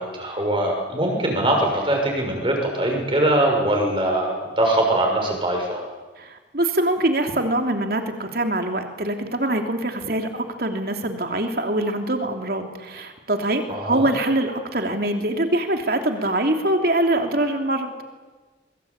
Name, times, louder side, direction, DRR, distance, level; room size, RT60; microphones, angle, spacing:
voice 1, 0.0-5.8 13.7-14.1, right 1 dB, 30° right, 1 dB, 6.5 m, -22 dB
voice 2, 6.2-17.9, right 1 dB, 55° right, 4 dB, 3.0 m, -24 dB
23.5 x 23.0 x 8.8 m, 1.3 s
head